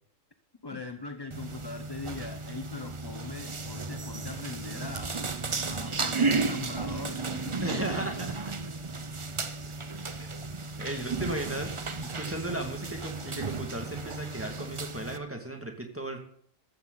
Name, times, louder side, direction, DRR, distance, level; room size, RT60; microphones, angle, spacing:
voice 1, 0.6-5.2 5.7-7.7, left 3 dB, 25° left, 7 dB, 0.7 m, -41 dB
sound 1, 1.3-15.2, right 4 dB, 30° right, 0.7 m, -34 dB
voice 2, 7.6-8.5 10.8-16.2, right 1 dB, 10° right, 3 dB, 2.1 m, -35 dB
15.0 x 13.0 x 4.0 m, 0.62 s
omnidirectional pair, 1.4 m